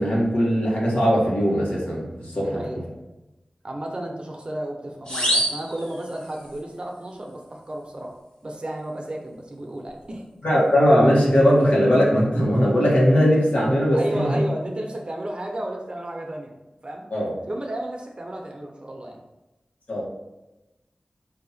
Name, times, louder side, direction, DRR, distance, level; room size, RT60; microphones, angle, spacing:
voice 1, 0.0-2.6 10.4-14.4 17.1-17.3 19.9-20.0, equal, 70° left, -5 dB, 1.6 m, -19 dB
voice 2, 2.4-2.8 3.6-8.1 8.4-10.2 13.9-16.5 16.8-17.0 17.5-19.2, right 1 dB, 45° right, 0 dB, 0.8 m, -32 dB
sound 1, 5.1-6.6, equal, 40° left, 1.4 m, -26 dB
4.4 x 2.8 x 4.2 m, 1.0 s
wide cardioid pair, 75°, 2 cm